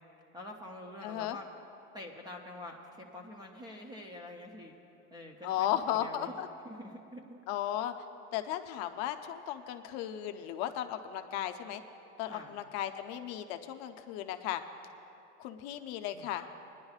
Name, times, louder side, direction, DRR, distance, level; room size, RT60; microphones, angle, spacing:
voice 1, 0.3-1.5 1.9-4.7 5.1-6.3 6.7-7.4 12.3-12.6 16.1-16.3, left 1 dB, 10° right, 1 dB, 0.4 m, -46 dB
voice 2, 1.0-1.4 5.4-6.5 7.5-7.9 8.3-11.8 12.2-14.6 15.4-16.5, left 11 dB, 45° left, 7 dB, 0.5 m, -35 dB
25.5 x 10.5 x 2.4 m, 2.8 s
supercardioid pair, 150°, 37 cm